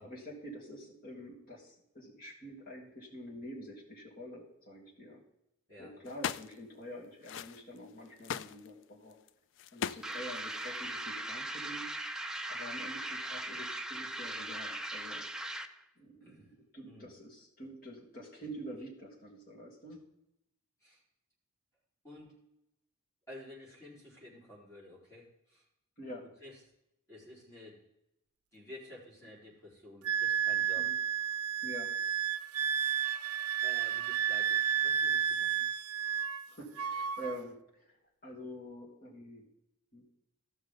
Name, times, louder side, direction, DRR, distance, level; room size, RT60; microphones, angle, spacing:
voice 1, 0.0-5.2 5.8-9.1 9.7-11.9 12.5-15.3 16.0-20.0 26.0-26.2 30.8-31.0 31.6-31.9 36.5-38.0 38.2-39.4 39.9-40.0, equal, 40° left, -4 dB, 3.2 m, -47 dB
sound 1, 6.1-6.5 7.2-7.8 8.2-9.3 9.6-10.8, left 8 dB, 60° left, 0.4 m, -38 dB
sound 2, 10.0-15.8, right 1 dB, 5° right, 0.5 m, -39 dB
voice 2, 16.2-16.5 16.8-17.1 20.8-21.0 22.0-22.4 23.3-25.7 26.2-26.6 27.1-27.8 28.5-30.9 33.6-35.7, left 1 dB, 15° left, -7 dB, 4.3 m, -52 dB
Wind instrument woodwind instrument, 30.0-36.5 36.8-37.4, right 9 dB, 80° right, 0.5 m, -31 dB
14.5 x 6.5 x 3.8 m, 0.83 s
head